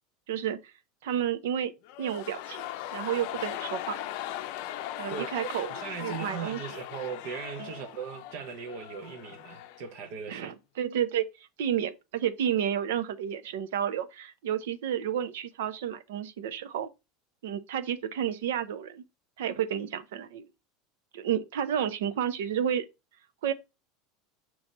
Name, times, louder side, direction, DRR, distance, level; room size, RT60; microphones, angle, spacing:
voice 1, 0.3-0.7 1.0-1.7 2.0-4.0 5.0-5.7 6.0-6.8 7.6-7.7 10.3-11.3 11.6-16.9 17.4-19.0 19.4-20.5 21.1-22.9 23.4-23.5, right 9 dB, 90° right, 0.7 m, -31 dB
sound 1, 1.8-9.9 10.2-10.3, left 13 dB, 50° left, 0.6 m, -39 dB
voice 2, 5.1-10.5, right 6 dB, 50° right, 0.9 m, -39 dB
6.0 x 3.1 x 5.3 m
supercardioid pair, 175°, 0 cm